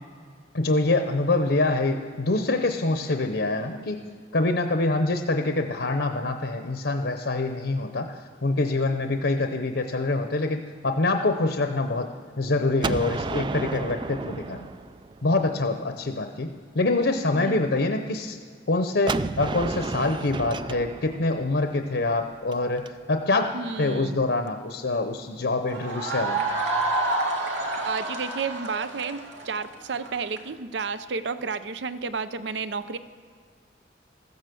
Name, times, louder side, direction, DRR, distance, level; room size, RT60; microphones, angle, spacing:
voice 1, 0.5-4.0 4.3-8.1 8.4-12.1 12.4-14.7 15.2-18.4 18.7-23.5 23.8-26.4, left 2 dB, 65° left, 6 dB, 0.8 m, -25 dB
Gunshot gunfire, 12.8-15.6 19.1-22.9, right 3 dB, 25° right, 0.3 m, -32 dB
voice 2, 23.5-24.2 27.8-33.0, right 5 dB, 70° right, 13 dB, 0.6 m, -31 dB
sound 1, 25.7-30.4, right 2 dB, 85° right, 2.1 m, -28 dB
15.0 x 9.4 x 6.9 m, 2.1 s
head